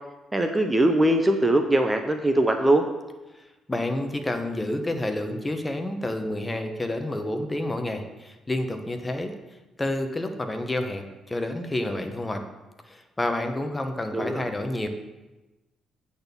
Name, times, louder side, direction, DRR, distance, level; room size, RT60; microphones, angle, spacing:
voice 1, 0.3-2.9 14.1-14.5, right 1 dB, 15° right, 5 dB, 0.6 m, -21 dB
voice 2, 3.7-9.3 9.8-12.4 12.9-14.9, left 1 dB, 15° left, 6 dB, 1.0 m, -29 dB
8.6 x 4.2 x 6.9 m, 1.1 s
cardioid pair, 90°, 0 cm